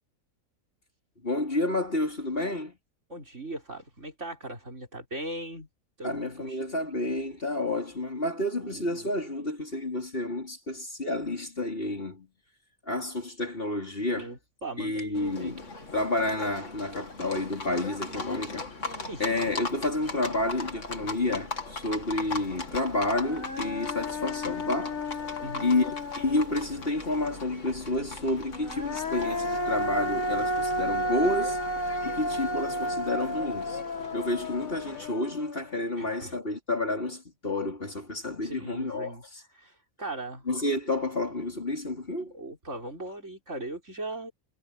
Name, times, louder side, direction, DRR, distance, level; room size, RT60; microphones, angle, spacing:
voice 1, 1.2-2.8 6.0-12.3 12.9-14.3 14.8-15.6 15.9-18.7 19.2-25.0 25.6-31.6 32.0-33.8 34.1-39.2 40.5-42.3, left 2 dB, 40° left, 4.5 m, -30 dB
voice 2, 3.1-5.7 6.0-6.6 8.6-9.1 14.1-15.5 19.1-19.5 25.4-25.7 34.0-34.2 36.0-36.4 38.4-39.2 39.5-40.4 42.3-44.3, right 2 dB, 55° right, 6.1 m, -39 dB
Livestock farm animals working animals, 15.1-35.1, left 3 dB, 60° left, 2.9 m, -40 dB
Human voice, 22.7-22.8 23.2-26.9 28.5-35.8, equal, 75° left, 4.7 m, -32 dB
omnidirectional pair, 1.5 m